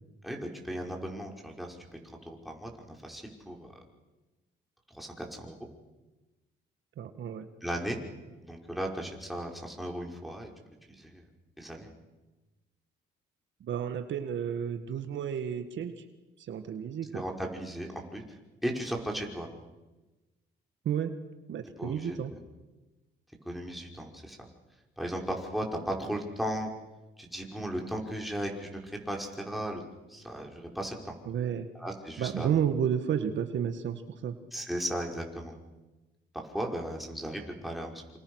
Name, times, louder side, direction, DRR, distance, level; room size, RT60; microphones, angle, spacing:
voice 1, 0.2-3.7 4.9-5.7 7.6-8.0 8.4-10.5 10.9-11.2 11.6-11.9 17.1-18.2 18.6-19.5 21.8-22.4 23.4-24.4 25.0-26.7 27.2-29.8 30.1-31.2 31.8-32.5 34.5-35.6 36.3-38.0, equal, ahead, 0 dB, 5.5 m, -36 dB
voice 2, 7.0-7.5 13.6-16.0 16.4-17.2 20.9-21.1 21.5-22.3 31.3-31.7 32.2-34.4, right 8 dB, 70° right, 8 dB, 1.9 m, -31 dB
27.5 x 27.0 x 6.5 m, 1.1 s
cardioid pair, 90°, 20 cm